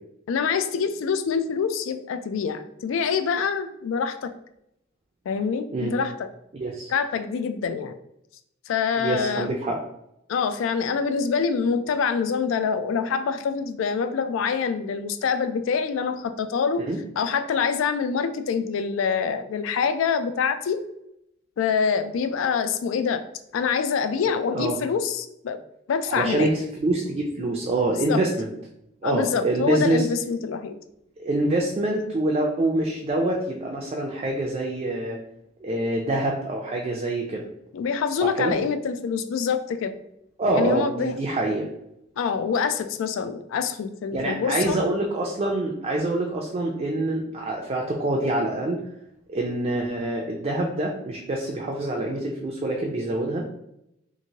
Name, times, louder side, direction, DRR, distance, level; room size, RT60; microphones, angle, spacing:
voice 1, 0.3-4.3 5.3-6.3 6.9-7.9 8.7-9.5 10.3-16.8 17.2-20.8 21.6-23.2 23.5-25.6 25.9-26.5 28.1-28.2 29.0-30.8 37.7-39.9 40.6-41.2 42.2-44.8, left 6 dB, 80° left, 10 dB, 0.3 m, -25 dB
voice 2, 6.5-6.9 9.0-9.8 16.8-17.0 24.2-24.8 26.1-28.5 29.0-30.1 31.2-35.2 35.6-37.5 38.2-38.6 40.4-41.7 44.1-48.8 49.3-53.5, right 2 dB, 30° right, -1 dB, 0.4 m, -26 dB
2.9 x 2.5 x 2.7 m, 0.79 s
head